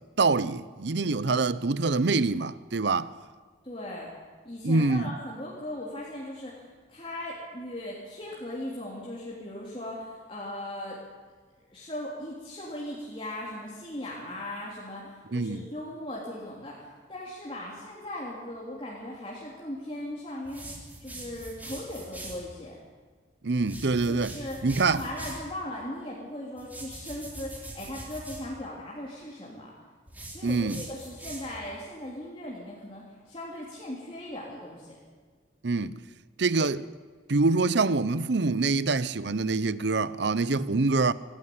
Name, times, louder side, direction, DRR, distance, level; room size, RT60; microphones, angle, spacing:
voice 1, 0.0-3.1 4.6-5.1 15.3-15.7 23.4-24.4 24.6-25.0 30.4-30.8 35.6-36.0 36.4-36.9 37.3-41.1, right 3 dB, 65° right, 0.7 m, -25 dB
voice 2, 3.6-4.1 4.4-11.0 11.7-20.7 21.0-22.8 24.1-29.7 30.3-35.0, left 1 dB, 30° left, 3.3 m, -38 dB
sound 1, 20.4-22.4 23.6-25.5 26.6-28.5 30.1-31.7, right 1 dB, 10° right, 3.5 m, -43 dB
25.5 x 11.5 x 9.5 m
head